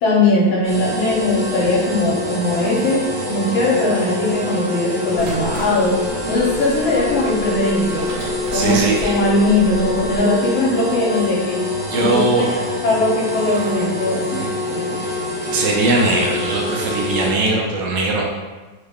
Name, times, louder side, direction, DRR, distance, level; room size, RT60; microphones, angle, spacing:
voice 1, 0.0-5.9 6.3-8.1 8.5-11.6 12.1-15.0, left 2 dB, 85° left, -5 dB, 1.5 m, -19 dB
sound 1, 0.6-17.3, left 2 dB, 55° right, 0.7 m, -25 dB
sound 2, 5.1-10.2, equal, 40° right, 1.5 m, -34 dB
voice 2, 8.5-9.2 11.9-12.5 13.5-13.6 14.3-14.5 15.5-18.2, right 2 dB, 75° right, -1 dB, 1.2 m, -20 dB
3.7 x 2.1 x 3.4 m, 1.2 s
omnidirectional pair, 2.1 m